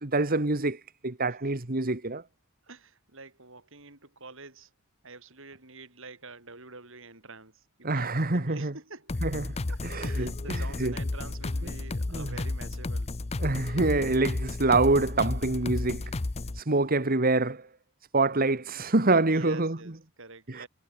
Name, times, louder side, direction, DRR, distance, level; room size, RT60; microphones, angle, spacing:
voice 1, 0.0-2.2 7.8-8.7 9.2-9.5 9.8-10.9 12.1-12.4 13.4-16.0 16.5-17.7 18.1-19.8 20.5-20.7, right 2 dB, 45° right, 1.7 m, -26 dB
voice 2, 2.7-4.7 5.0-9.1 9.7-13.2 19.3-20.7, right 3 dB, 60° right, 7.2 m, -47 dB
sound 1, 9.1-16.6, left 2 dB, 30° left, 0.6 m, -32 dB
head